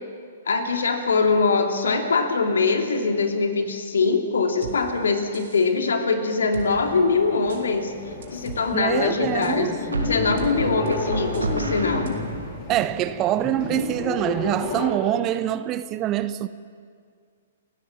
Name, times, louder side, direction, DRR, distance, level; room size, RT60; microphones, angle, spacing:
voice 1, 0.5-7.9 8.3-9.7 10.0-12.1, left 4 dB, 65° left, 3.0 m, -22 dB
sound 1, 4.6-4.8 5.3-5.7 6.5-6.7 7.5-7.6 8.2-8.6 9.4-9.5 10.4-10.5 10.9-11.0 11.3-11.5 12.1-12.2, right 8 dB, 55° right, 3.5 m, -38 dB
sound 2, 6.6-14.9, left 4 dB, 35° left, 5.4 m, -32 dB
sound 3, 7.3-7.7 9.9-12.6, right 2 dB, 75° right, 3.0 m, -30 dB
voice 2, 8.7-9.8 12.7-16.5, right 12 dB, 25° right, 0.8 m, -25 dB
29.5 x 16.0 x 7.5 m
figure-of-eight pair, 115°, 0 cm